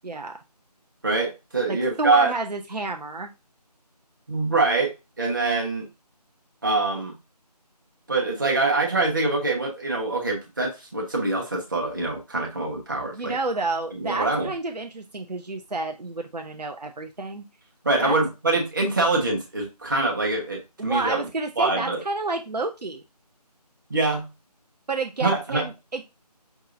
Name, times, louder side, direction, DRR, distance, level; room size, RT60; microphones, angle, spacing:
voice 1, 0.0-0.4 1.7-3.3 13.1-17.4 18.0-18.2 20.8-23.0 24.9-26.0, right 3 dB, 75° right, 4 dB, 0.7 m, -30 dB
voice 2, 1.0-2.3 4.3-5.9 6.6-7.2 8.1-13.3 13.9-14.5 17.8-21.2 21.6-22.0 23.9-24.3 25.2-25.7, right 3 dB, 30° right, -1 dB, 1.0 m, -24 dB
5.9 x 2.8 x 2.6 m, 0.25 s
figure-of-eight pair, 165°, 21 cm